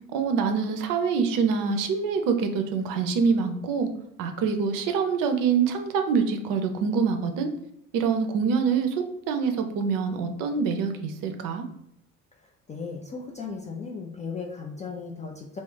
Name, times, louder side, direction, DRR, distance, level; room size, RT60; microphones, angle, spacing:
voice 1, 0.1-3.9 4.2-7.5 7.9-11.7, right 5 dB, 55° right, 6 dB, 0.6 m, -25 dB
voice 2, 12.4-15.6, left 4 dB, 20° left, -1 dB, 0.3 m, -36 dB
2.3 x 2.0 x 3.7 m, 0.76 s
figure-of-eight pair, 50°, 41 cm